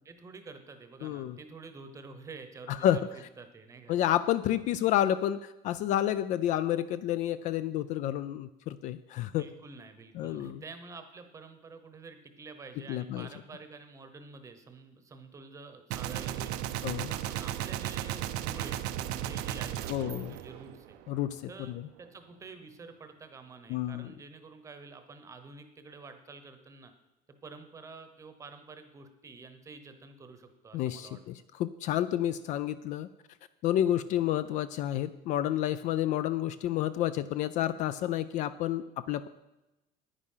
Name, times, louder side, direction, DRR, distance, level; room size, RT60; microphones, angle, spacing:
voice 1, 0.0-4.0 9.3-16.6 17.1-21.0 21.5-26.9 27.4-31.2, right 4 dB, 15° right, 8 dB, 0.9 m, -48 dB
voice 2, 1.0-1.4 2.8-3.0 3.9-9.5 10.2-10.6 12.9-13.3 16.8-17.1 19.9-20.3 21.1-21.4 21.7-21.8 23.7-24.1 30.7-33.1 33.6-39.3, left 12 dB, 45° left, 14 dB, 0.4 m, -30 dB
Gunshot gunfire, 15.9-21.1, right 12 dB, 65° right, 0.6 m, -35 dB
10.0 x 9.6 x 5.6 m, 0.97 s
cardioid pair, 175°, 18 cm